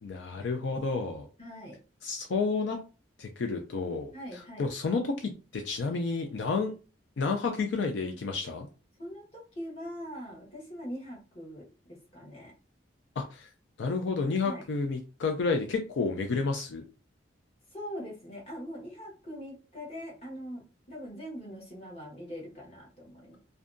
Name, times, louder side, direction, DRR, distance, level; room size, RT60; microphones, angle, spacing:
voice 1, 0.0-1.3 2.0-2.8 3.2-6.7 7.2-8.7 13.2-13.5 13.8-16.8, left 4 dB, 70° left, 3 dB, 0.4 m, -30 dB
voice 2, 1.4-1.8 4.1-4.7 9.0-12.5 14.4-14.7 17.7-23.4, equal, 35° left, -3 dB, 1.0 m, -42 dB
2.6 x 2.2 x 2.5 m, 0.33 s
head